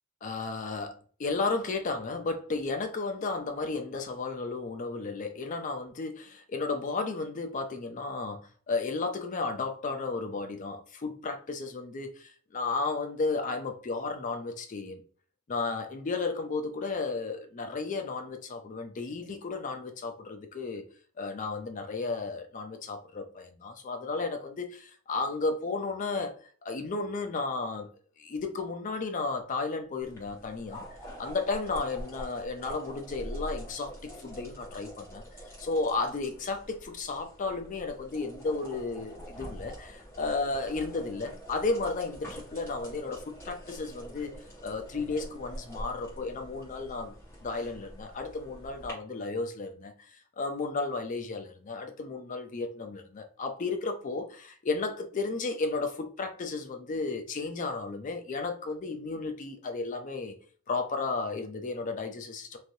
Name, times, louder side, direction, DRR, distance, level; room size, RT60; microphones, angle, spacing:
voice 1, 0.2-15.0 15.5-20.8 21.2-26.3 26.6-27.9 28.2-30.8 31.2-35.2 35.6-44.3 44.6-47.1 47.4-60.3 60.7-62.6, left 3 dB, 35° left, 0.4 m, -33 dB
sound 1, 30.0-48.9, equal, 10° left, 1.2 m, -45 dB
3.2 x 2.5 x 2.6 m
head